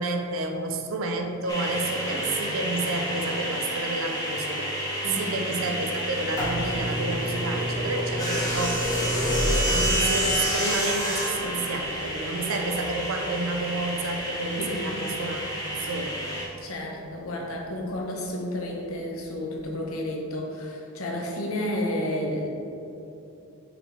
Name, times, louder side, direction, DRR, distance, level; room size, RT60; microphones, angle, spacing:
voice 1, 0.0-4.9 5.2-8.8 9.7-16.5, right 2 dB, 70° right, 4 dB, 0.6 m, -30 dB
sound 1, 1.5-16.4, equal, 15° left, 0.9 m, -30 dB
sound 2, 6.0-17.7 18.5-18.6 19.6-19.7 19.8-19.9, equal, 20° right, 1.2 m, -31 dB
voice 2, 14.6-14.9 16.6-22.5, left 1 dB, 75° left, 0 dB, 1.0 m, -31 dB
5.8 x 5.4 x 3.3 m, 2.8 s
head